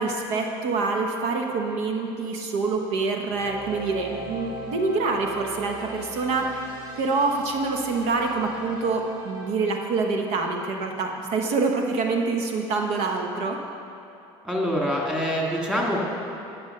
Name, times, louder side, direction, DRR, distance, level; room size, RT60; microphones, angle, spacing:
voice 1, 0.0-6.7 7.0-13.6, right 3 dB, 80° right, 2 dB, 1.0 m, -26 dB
sound 1, 3.3-9.5, right 1 dB, 40° right, 2.1 m, -39 dB
voice 2, 14.4-16.0, equal, 5° right, -2 dB, 2.0 m, -25 dB
10.5 x 6.2 x 6.5 m, 2.8 s
supercardioid pair, 105°, 12 cm